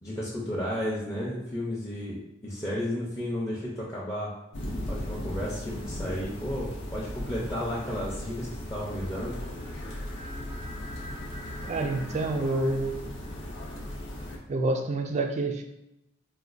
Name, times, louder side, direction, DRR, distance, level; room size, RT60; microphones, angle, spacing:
voice 1, 0.0-4.3 4.9-9.3, left 1 dB, 15° left, -7 dB, 0.5 m, -33 dB
sound 1, 4.5-14.4, left 1 dB, 65° left, 0.5 m, -37 dB
voice 2, 11.6-13.1 14.5-15.6, right 2 dB, 35° right, 5 dB, 0.3 m, -28 dB
4.0 x 2.2 x 2.4 m, 0.87 s
head